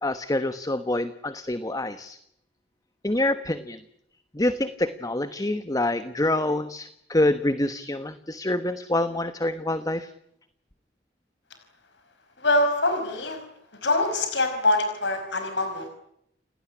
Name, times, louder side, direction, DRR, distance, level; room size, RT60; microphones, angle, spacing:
voice 1, 0.0-2.2 3.0-3.8 4.3-10.1, left 1 dB, 20° left, 12 dB, 1.2 m, -26 dB
voice 2, 12.4-13.4 13.8-15.9, left 2 dB, 70° left, 7 dB, 5.1 m, -24 dB
29.5 x 18.0 x 9.8 m, 0.75 s
head